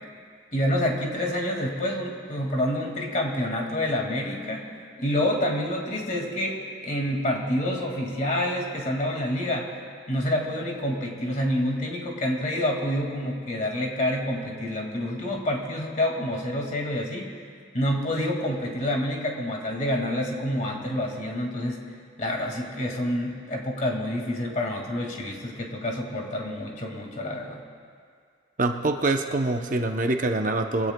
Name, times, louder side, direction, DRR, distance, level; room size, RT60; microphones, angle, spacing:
voice 1, 0.5-4.7 5.0-9.8 10.1-17.3 17.7-21.8 22.2-27.6, left 1 dB, 40° left, 0 dB, 2.0 m, -28 dB
voice 2, 28.6-30.9, right 2 dB, 40° right, 4 dB, 0.7 m, -25 dB
23.5 x 16.5 x 2.2 m, 2.1 s
head